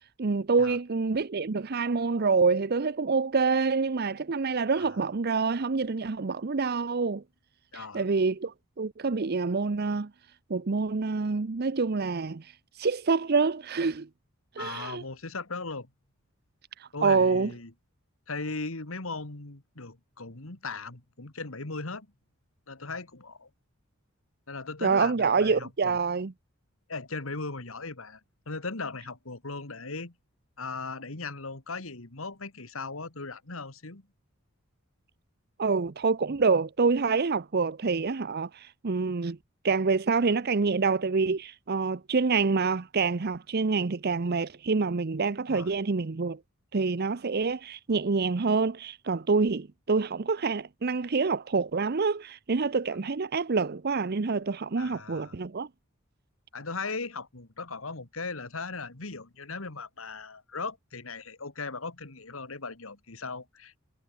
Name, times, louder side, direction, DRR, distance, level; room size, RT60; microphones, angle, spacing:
voice 1, 0.2-7.2 7.7-10.1 10.5-14.1 14.6-15.0 16.8-17.5 24.8-26.3 35.6-39.4 39.6-46.4 46.7-55.7, right 4 dB, 50° right, 0.6 m, -27 dB
voice 2, 7.7-8.1 14.6-15.9 16.9-17.7 18.3-22.1 22.7-23.5 24.5-26.0 26.9-28.2 28.5-30.1 30.6-34.0 45.5-45.7 54.8-55.4 56.5-63.8, left 3 dB, 75° left, 2.3 m, -38 dB
head